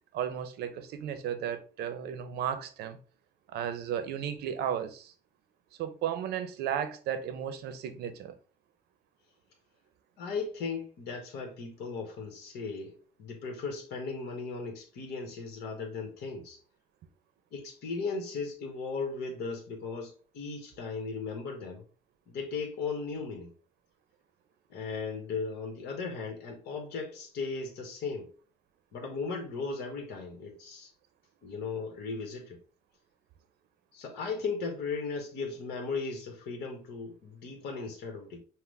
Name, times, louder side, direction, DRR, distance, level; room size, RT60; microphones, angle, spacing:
voice 1, 0.1-3.0 3.5-5.1 5.8-8.4, right 9 dB, 75° right, 0.7 m, -34 dB
voice 2, 10.2-16.6 17.5-21.8 22.3-23.5 24.7-28.3 28.9-30.9 31.4-32.6 33.9-38.4, left 4 dB, 75° left, 1.2 m, -37 dB
5.9 x 2.2 x 3.2 m
cardioid pair, 110°, 17 cm